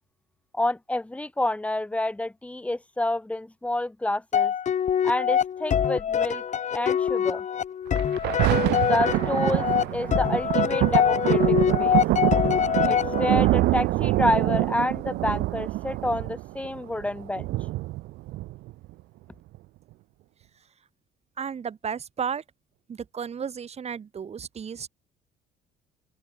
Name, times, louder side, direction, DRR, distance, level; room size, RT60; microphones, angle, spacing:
voice 1, 0.5-4.5 5.0-6.4 6.7-7.4 8.8-9.7 9.9-12.0 12.8-17.5, left 1 dB, 10° left, 1.5 m, -28 dB
sound 1, 4.3-13.6, left 8 dB, 45° left, 2.4 m, -24 dB
Thunder, 7.9-18.9 19.5-19.6, right 18 dB, 80° right, 0.8 m, -25 dB
voice 2, 21.4-22.4 22.9-24.9, right 7 dB, 40° right, 4.1 m, -33 dB
open air
cardioid pair, 110°, 17 cm